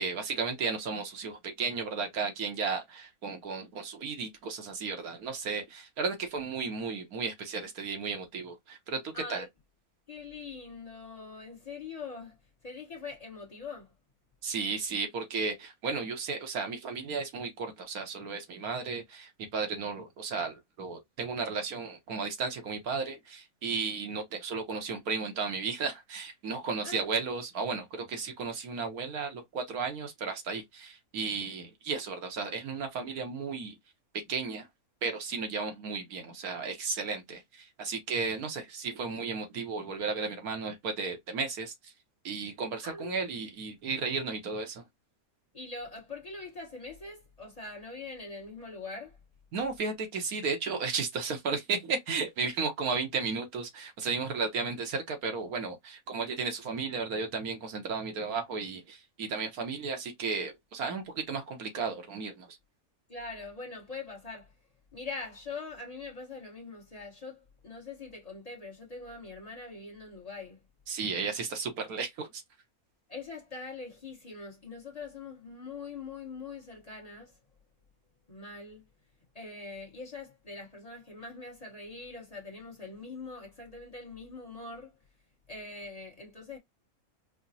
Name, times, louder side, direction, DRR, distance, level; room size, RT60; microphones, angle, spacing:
voice 1, 0.0-9.5 14.4-33.7 34.3-34.7 35.0-41.9 42.2-44.8 49.5-62.5 70.9-72.4, right 4 dB, 80° right, 1.4 m, -34 dB
voice 2, 9.1-9.5 10.1-12.4 12.6-13.9 26.8-27.0 42.8-43.3 45.5-49.2 63.1-64.5 64.9-70.6 73.1-77.4 78.3-78.9 79.3-84.9 85.5-86.6, left 4 dB, 30° left, 1.1 m, -43 dB
4.9 x 2.1 x 2.7 m
omnidirectional pair, 1.5 m